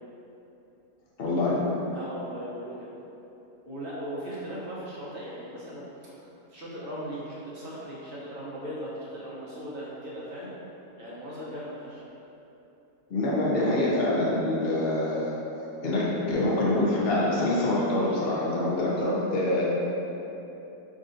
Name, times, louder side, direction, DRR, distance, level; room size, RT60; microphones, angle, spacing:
voice 1, 1.2-1.7 13.1-15.3 15.8-19.6, left 1 dB, 50° left, -6 dB, 0.8 m, -25 dB
voice 2, 1.9-2.9 3.6-6.2 6.5-10.5 11.0-12.1, equal, 40° right, -7 dB, 0.9 m, -38 dB
5.3 x 3.7 x 2.5 m, 3.0 s
omnidirectional pair, 1.8 m